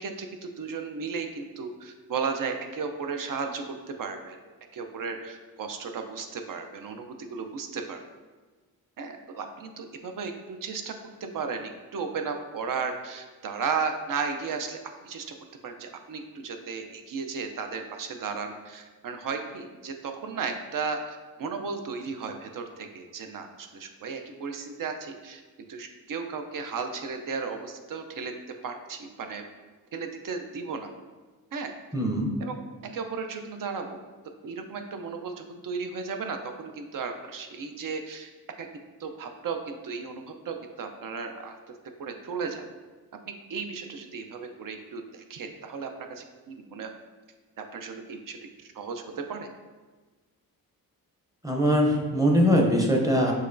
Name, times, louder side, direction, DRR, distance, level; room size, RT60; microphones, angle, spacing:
voice 1, 0.0-4.4 4.7-8.0 9.0-10.9 11.3-14.8 15.0-15.3 15.6-25.4 25.7-28.3 28.6-29.4 29.9-30.9 31.5-31.7 32.4-32.6 32.9-34.0 34.4-38.3 38.6-38.7 39.0-41.5 42.0-42.6 43.2-46.9 47.7-48.4 48.8-49.5, right 5 dB, 60° right, 5 dB, 0.6 m, -35 dB
voice 2, 31.9-32.3 51.4-53.3, equal, 10° right, 0 dB, 0.6 m, -22 dB
6.5 x 3.0 x 2.6 m, 1.3 s
wide cardioid pair, 110°, 37 cm